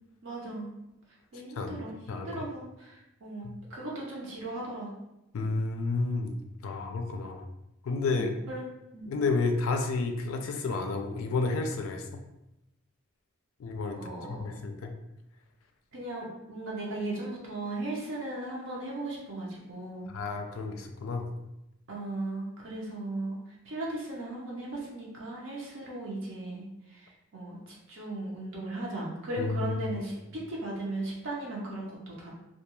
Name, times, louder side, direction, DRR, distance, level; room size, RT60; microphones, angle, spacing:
voice 1, 0.2-0.7 1.3-4.9 8.0-8.7 8.9-9.1 13.9-14.6 15.9-20.1 21.9-23.4 23.7-26.6 27.3-32.3, right 2 dB, 60° right, -4 dB, 0.6 m, -37 dB
voice 2, 2.1-2.5 3.4-3.6 5.3-6.4 6.6-7.4 7.8-8.3 9.0-12.2 13.6-14.0 14.3-14.9 20.1-21.3 29.4-29.7, left 3 dB, 75° left, 5 dB, 0.3 m, -31 dB
2.3 x 2.2 x 2.9 m, 0.88 s
head